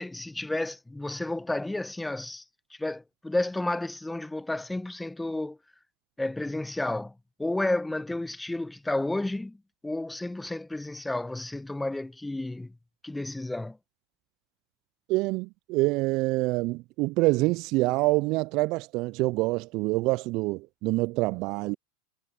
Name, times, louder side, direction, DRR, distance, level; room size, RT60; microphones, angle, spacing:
voice 1, 0.0-2.4 2.7-5.6 6.2-7.1 7.4-9.6 9.8-12.8 13.0-13.8, left 2 dB, 5° left, 1.6 m, -31 dB
voice 2, 15.1-21.8, right 22 dB, 55° right, 0.4 m, -26 dB
hypercardioid pair, 95°, 0 cm